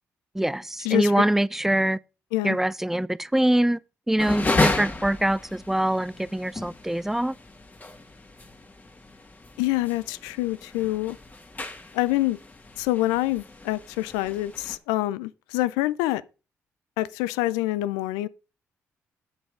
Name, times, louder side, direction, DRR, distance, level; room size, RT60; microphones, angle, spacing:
voice 1, 0.3-2.0 2.4-3.8 4.1-7.3, right 1 dB, 5° right, 0.5 m, -24 dB
sound 1, 4.2-14.8, left 2 dB, 25° left, 1.9 m, -32 dB
voice 2, 9.6-11.2 11.9-12.4 12.8-16.2 17.0-18.3, left 17 dB, 90° left, 0.4 m, -26 dB
8.0 x 5.9 x 4.9 m
hypercardioid pair, 50°, 7 cm